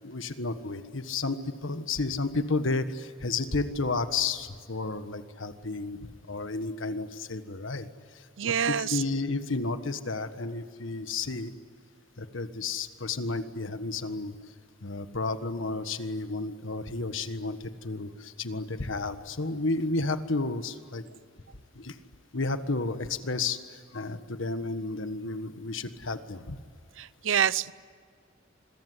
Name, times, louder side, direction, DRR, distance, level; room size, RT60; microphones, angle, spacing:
voice 1, 0.0-7.9 8.1-11.5 12.2-14.3 14.8-21.0 21.7-21.9 22.3-23.6 23.9-26.6, left 3 dB, 80° left, 10 dB, 1.5 m, -32 dB
voice 2, 8.4-9.0 27.0-27.7, right 8 dB, 75° right, 19 dB, 0.6 m, -27 dB
26.5 x 22.0 x 9.8 m, 2.2 s
head